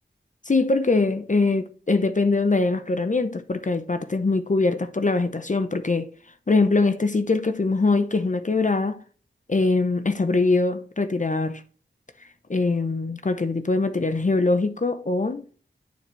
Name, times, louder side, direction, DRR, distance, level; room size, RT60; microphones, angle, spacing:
voice 1, 0.5-6.1 6.5-9.0 9.5-11.6 12.5-15.4, left 3 dB, 40° left, 0.6 m, -22 dB
9.4 x 4.3 x 3.1 m
wide cardioid pair, 50°, 21 cm